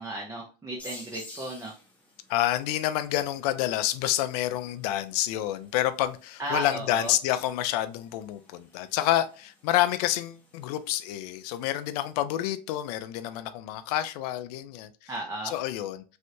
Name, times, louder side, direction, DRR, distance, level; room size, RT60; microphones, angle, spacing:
voice 1, 0.0-1.7 6.4-7.1 15.1-15.5, right 2 dB, 15° right, 0.8 m, -34 dB
sound 1, 0.8-12.1, left 1 dB, 5° left, 1.1 m, -53 dB
voice 2, 2.3-15.1 15.4-16.0, left 13 dB, 75° left, 0.5 m, -28 dB
3.2 x 2.7 x 2.6 m
supercardioid pair, 120°, 20 cm